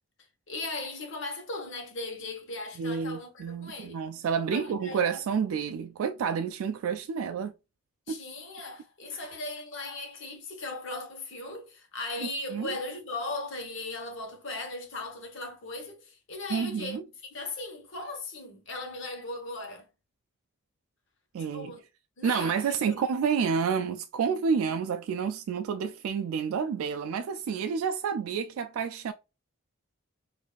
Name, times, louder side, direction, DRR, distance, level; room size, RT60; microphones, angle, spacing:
voice 1, 0.5-4.0 4.5-5.2 8.1-17.0 17.2-19.9 21.4-21.8 22.2-22.8, left 2 dB, 60° left, 1.0 m, -38 dB
voice 2, 2.8-7.5 8.1-8.2 9.1-9.2 12.2-12.7 16.5-17.0 21.3-21.7 22.2-29.1, right 6 dB, 80° right, 0.3 m, -29 dB
4.6 x 2.6 x 2.3 m
head